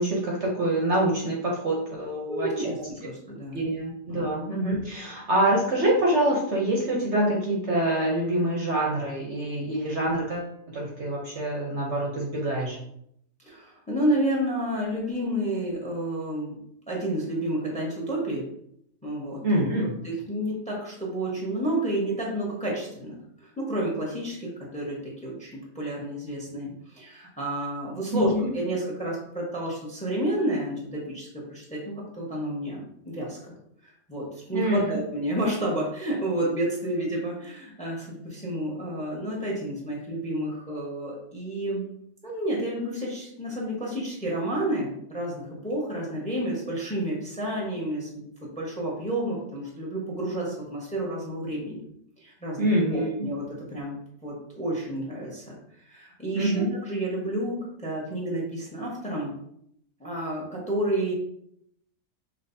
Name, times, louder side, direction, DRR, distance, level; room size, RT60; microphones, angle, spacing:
voice 1, 0.0-2.5 3.5-10.5 10.7-12.8 19.4-19.9 28.1-28.5 34.5-35.0 52.6-53.1 56.3-56.7, right 1 dB, 55° right, -2 dB, 1.0 m, -25 dB
voice 2, 2.3-3.6 4.1-4.3 13.5-16.6 16.9-18.5 19.0-19.4 20.0-23.1 23.4-33.5 33.8-41.8 42.2-48.3 48.6-51.8 52.2-54.0 54.2-59.3 60.0-61.2, right 1 dB, 5° left, -3 dB, 1.0 m, -30 dB
5.6 x 3.1 x 2.7 m, 0.72 s
omnidirectional pair, 1.6 m